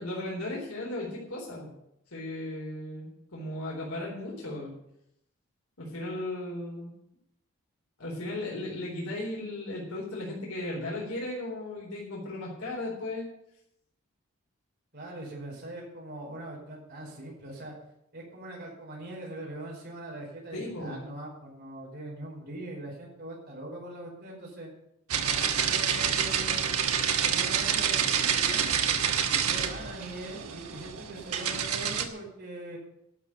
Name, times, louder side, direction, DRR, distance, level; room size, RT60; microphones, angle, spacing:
voice 1, 0.0-1.7 2.1-4.7 5.8-6.9 8.0-13.3 20.5-21.1, left 1 dB, 85° left, -3 dB, 4.0 m, -36 dB
voice 2, 14.9-17.7 18.1-24.7 25.2-26.7 27.2-28.8 29.5-32.8, right 1 dB, 50° right, -2 dB, 5.1 m, -41 dB
sound 1, 25.1-32.1, right 8 dB, 90° right, 1.3 m, -28 dB
12.0 x 6.8 x 9.4 m, 0.78 s
head